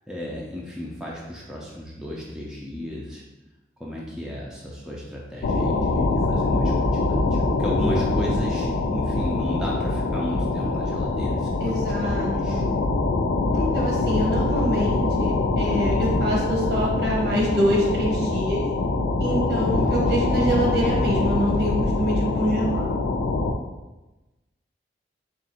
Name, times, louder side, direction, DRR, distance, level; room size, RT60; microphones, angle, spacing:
voice 1, 0.1-3.2 3.8-11.7 12.0-12.6 19.5-20.1, equal, 5° right, -5 dB, 0.4 m, -34 dB
sound 1, 5.4-23.5, left 2 dB, 90° left, 0.4 m, -24 dB
voice 2, 7.8-8.4 11.6-12.7 13.5-18.6 19.2-23.0, equal, 65° right, -3 dB, 1.1 m, -26 dB
3.6 x 2.5 x 4.2 m, 1.1 s
head